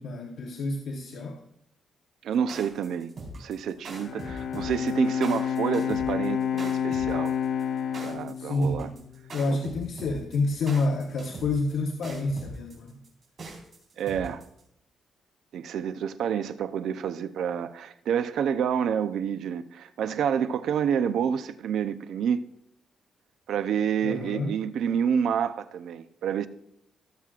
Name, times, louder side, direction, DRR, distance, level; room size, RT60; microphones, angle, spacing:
voice 1, 0.0-1.4 8.4-9.0 9.3-13.0 24.0-24.5, left 3 dB, 75° left, 1.1 m, -28 dB
voice 2, 2.2-3.1 3.4-7.4 8.0-8.9 9.5-9.6 14.0-14.4 15.5-22.4 23.5-26.5, right 8 dB, 75° right, 0.6 m, -28 dB
sound 1, 2.3-14.6, right 2 dB, 40° right, 4.4 m, -41 dB
Bowed string instrument, 3.9-9.3, left 8 dB, 60° left, 0.6 m, -29 dB
18.5 x 7.6 x 2.4 m
cardioid pair, 155°, 0 cm